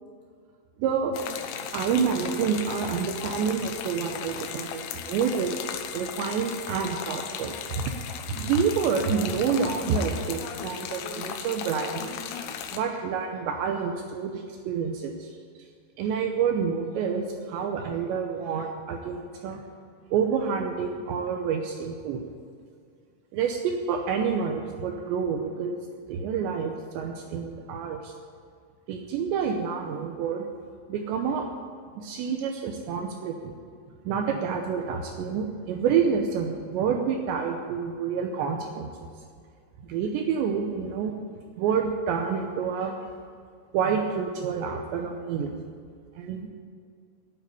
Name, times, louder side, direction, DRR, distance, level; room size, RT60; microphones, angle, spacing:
voice 1, 0.8-1.2 1.7-5.6 5.9-7.9 8.3-12.1 12.7-15.3 16.0-19.6 20.1-22.2 23.3-25.8 26.1-28.1 28.9-30.5 30.9-31.5 32.0-33.5 34.1-38.9 39.9-41.2 41.6-42.9 43.7-45.5 46.2-46.5, right 6 dB, 80° right, 3 dB, 2.6 m, -28 dB
sound 1, 1.1-12.8, left 8 dB, 90° left, 3.7 m, -36 dB
10.0 x 8.8 x 9.6 m, 2.2 s
omnidirectional pair, 5.9 m